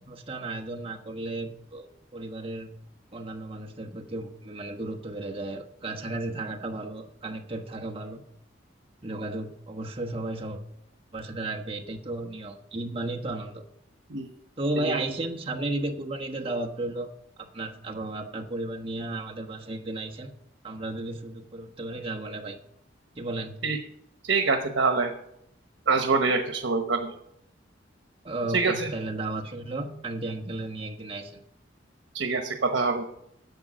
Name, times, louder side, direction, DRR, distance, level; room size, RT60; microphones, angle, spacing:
voice 1, 0.1-1.9 2.1-2.7 3.1-8.2 9.0-10.6 11.1-13.6 14.6-17.1 17.4-20.3 20.6-22.6 23.2-23.5 28.2-31.4, right 2 dB, 30° right, 1 dB, 1.2 m, -34 dB
voice 2, 24.2-25.1 25.9-27.1 28.5-28.9 32.1-33.1, right 4 dB, 80° right, 5 dB, 1.1 m, -25 dB
10.5 x 7.9 x 6.2 m, 0.76 s
head